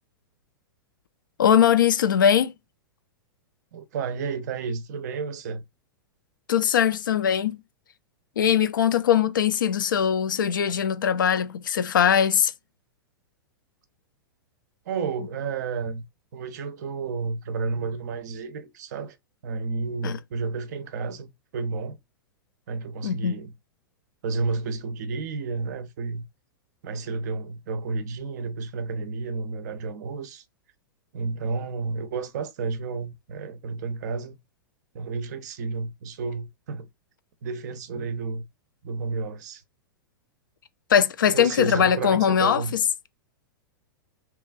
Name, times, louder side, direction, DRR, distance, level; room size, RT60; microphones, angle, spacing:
voice 1, 1.4-2.5 6.5-7.6 8.4-12.5 20.0-20.2 23.0-23.4 40.9-42.8, left 8 dB, 60° left, 0.4 m, -21 dB
voice 2, 3.7-5.6 14.9-16.0 16.3-19.2 19.4-22.0 22.7-23.5 24.2-26.2 26.8-30.4 31.1-34.4 34.9-36.9 37.4-38.4 38.8-39.6 41.3-42.7, right 4 dB, 50° right, 0.5 m, -31 dB
2.9 x 2.2 x 2.2 m
figure-of-eight pair, 100°, 12 cm